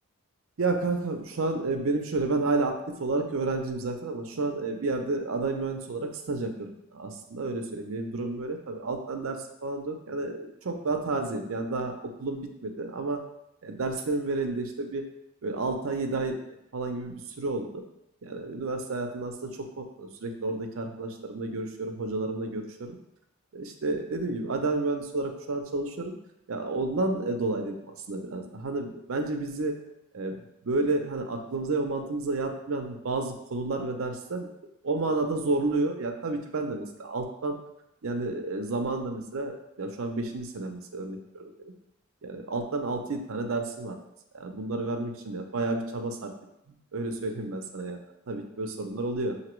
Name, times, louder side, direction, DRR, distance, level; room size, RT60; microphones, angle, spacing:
voice 1, 0.6-13.2 13.6-15.0 15.4-16.4 16.7-17.8 18.2-23.0 23.5-26.1 26.5-29.8 30.1-30.4 30.6-34.5 34.8-37.6 38.0-41.7 42.2-44.0 44.3-46.3 46.7-48.0 48.3-49.4, right 2 dB, 70° right, 4 dB, 0.5 m, -31 dB
5.8 x 2.7 x 3.1 m, 0.85 s
head